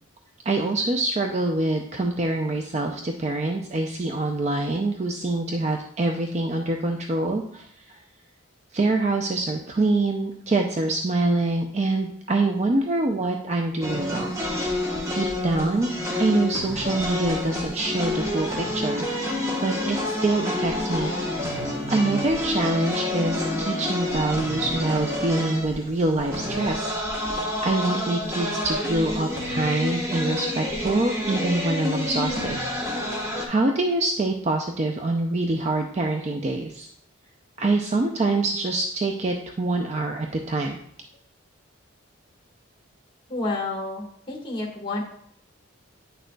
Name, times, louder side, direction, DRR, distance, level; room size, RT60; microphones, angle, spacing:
voice 1, 0.5-8.0 8.7-19.1 19.6-21.1 21.9-26.9 27.6-36.9 37.6-40.8, right 2 dB, 35° right, 3 dB, 0.4 m, -25 dB
sound 1, 13.8-33.5, left 1 dB, 15° right, 1.0 m, -28 dB
voice 2, 43.3-45.0, left 2 dB, 25° left, 0 dB, 1.5 m, -30 dB
9.1 x 6.3 x 2.2 m, 0.66 s
head